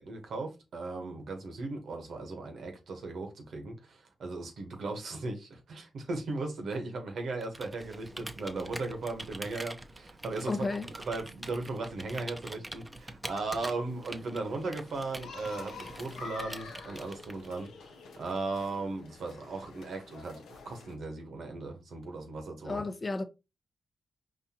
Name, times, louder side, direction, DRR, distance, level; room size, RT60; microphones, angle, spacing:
voice 1, 0.1-17.9 18.2-22.8, right 3 dB, 75° right, 0.9 m, -37 dB
Computer keyboard, 7.4-17.7, right 1 dB, 20° right, 0.5 m, -45 dB
voice 2, 10.5-10.9 22.6-23.2, left 3 dB, 40° left, 0.6 m, -32 dB
Revolving doors at the bank, 13.3-20.9, left 4 dB, 85° left, 0.5 m, -48 dB
4.1 x 2.6 x 2.7 m
supercardioid pair, 45°, 0 cm